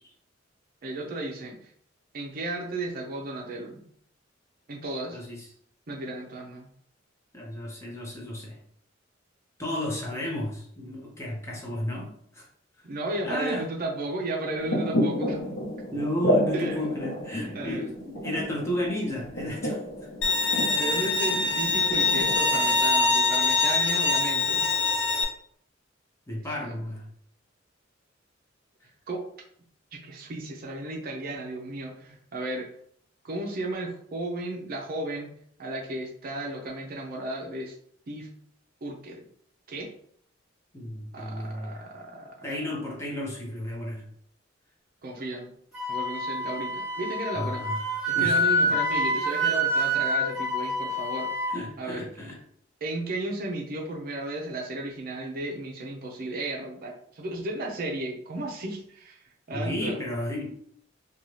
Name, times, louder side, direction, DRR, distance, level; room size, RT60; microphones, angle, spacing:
voice 1, 0.8-1.6 2.1-3.9 4.7-5.2 5.9-6.7 12.8-15.4 16.5-16.9 17.5-17.9 20.5-24.7 26.6-26.8 29.1-29.2 29.9-32.7 33.2-35.3 35.6-37.7 38.1-38.3 38.8-39.2 39.7-39.9 41.1-42.5 45.0-45.5 45.9-47.7 48.1-51.4 51.8-52.1 52.8-60.0, right 2 dB, 50° right, 0 dB, 0.5 m, -34 dB
voice 2, 5.1-5.4 7.3-8.6 9.6-12.5 13.2-13.6 15.9-20.1 22.7-22.8 26.3-27.0 40.7-41.8 42.4-44.1 47.3-47.8 48.1-48.8 51.5-52.4 59.5-60.5, left 1 dB, 15° left, -3 dB, 0.7 m, -33 dB
sound 1, 14.6-22.8, equal, 80° left, 0.9 m, -31 dB
Bowed string instrument, 20.2-25.2, left 3 dB, 65° left, 0.5 m, -24 dB
Wind instrument woodwind instrument, 45.7-51.5, equal, 5° right, 1.1 m, -27 dB
2.6 x 2.3 x 3.1 m, 0.64 s
head